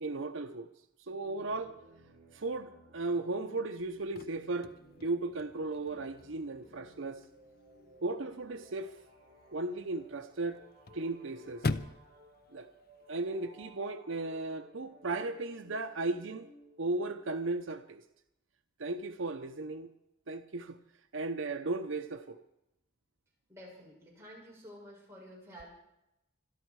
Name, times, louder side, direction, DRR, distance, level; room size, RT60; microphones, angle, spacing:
voice 1, 0.0-0.7 1.1-1.8 2.3-4.7 5.0-7.2 8.0-8.9 9.5-10.6 10.9-11.7 12.5-12.7 13.1-16.5 16.8-18.0 18.8-19.9 20.3-20.8 21.1-22.4, right 2 dB, 70° right, 8 dB, 0.8 m, -36 dB
sound 1, 1.1-17.2, equal, 50° right, 7.0 m, -58 dB
Chirp tweet / Car / Slam, 3.8-13.8, left 3 dB, 45° left, 0.7 m, -44 dB
voice 2, 23.5-25.7, equal, 15° right, -4 dB, 7.1 m, -51 dB
26.0 x 11.5 x 4.8 m, 0.85 s
head